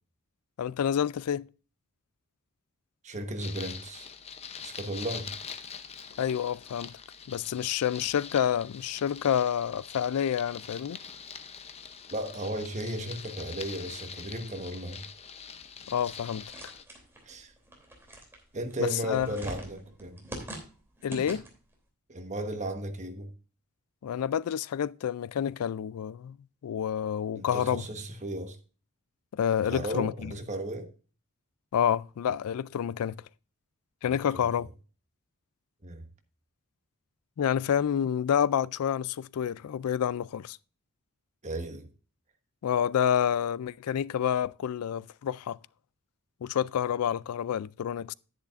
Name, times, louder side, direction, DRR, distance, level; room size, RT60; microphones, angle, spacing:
voice 1, 0.6-1.5 6.2-6.9 7.3-11.0 15.9-16.4 18.8-19.3 21.0-21.4 24.0-26.4 26.6-27.8 29.3-30.3 31.7-33.2 34.0-34.7 37.4-40.6 42.6-45.6 46.4-48.1, left 9 dB, 80° left, 0.3 m, -28 dB
voice 2, 3.0-4.1 4.6-5.3 12.1-15.0 17.2-17.5 18.5-20.2 22.1-23.3 27.3-28.6 29.6-30.9 34.1-34.7 35.8-36.1 41.4-41.9, right 1 dB, 30° right, 1.3 m, -35 dB
sound 1, 3.4-16.8, left 6 dB, 30° left, 0.6 m, -44 dB
sound 2, 15.9-21.7, right 1 dB, 10° right, 2.9 m, -44 dB
11.0 x 10.0 x 2.5 m
head